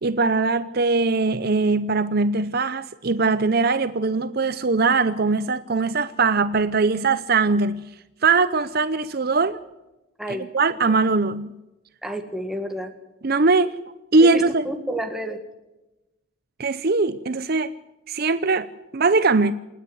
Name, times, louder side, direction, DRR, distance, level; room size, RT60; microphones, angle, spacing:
voice 1, 0.0-7.8 8.2-9.6 10.3-11.5 13.2-13.7 14.1-14.7 16.6-17.7 18.1-19.5, right 3 dB, 45° right, 0.6 m, -21 dB
voice 2, 12.0-12.9 14.2-15.4, right 1 dB, ahead, 1.9 m, -30 dB
28.0 x 9.9 x 9.6 m
head